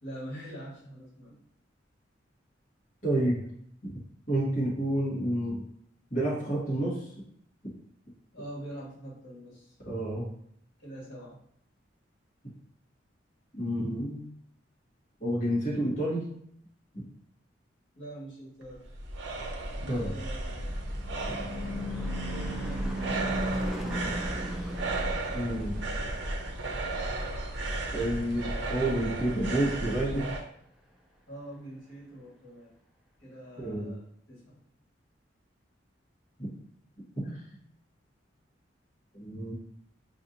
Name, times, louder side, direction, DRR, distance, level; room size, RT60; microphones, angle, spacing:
voice 1, 0.0-1.4 8.3-9.7 10.8-11.3 17.9-18.8 19.8-20.8 22.3-22.9 31.3-32.7 33.2-34.6, right 1 dB, 75° left, -5 dB, 1.6 m, -44 dB
voice 2, 3.0-3.4 3.8-3.9 4.3-5.6 6.1-7.1 9.8-10.2 13.6-14.2 15.2-16.2 19.9-20.1 21.3-21.4 25.3-25.8 27.9-30.2 33.6-33.9 36.4-36.5 37.2-37.4 39.1-39.5, right 1 dB, 45° left, -8 dB, 1.5 m, -29 dB
sound 1, 18.6-30.5, right 2 dB, 70° right, 0.7 m, -34 dB
Car passing by / Truck / Engine, 20.2-28.9, equal, 5° right, 0.4 m, -38 dB
5.5 x 2.8 x 2.6 m, 0.68 s
head